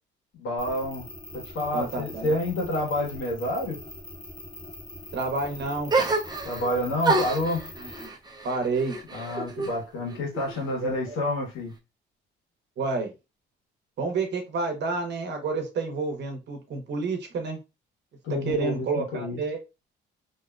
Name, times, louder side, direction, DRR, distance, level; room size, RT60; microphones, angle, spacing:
voice 1, 0.3-1.1 1.3-3.8 6.4-7.7 9.1-11.7 18.2-19.4, left 1 dB, 85° left, 1.2 m, -29 dB
sound 1, 0.6-8.1, left 1 dB, 25° left, 0.7 m, -43 dB
voice 2, 1.7-2.3 5.1-6.1 7.8-8.1 8.4-9.0 10.8-11.2 12.8-13.1 14.0-17.6 18.3-19.6, right 3 dB, 60° right, 0.9 m, -29 dB
sound 2, 5.9-6.7 7.0-9.8 10.1-10.9, right 3 dB, 20° right, 0.5 m, -28 dB
2.7 x 2.1 x 2.4 m
cardioid pair, 90°, 20 cm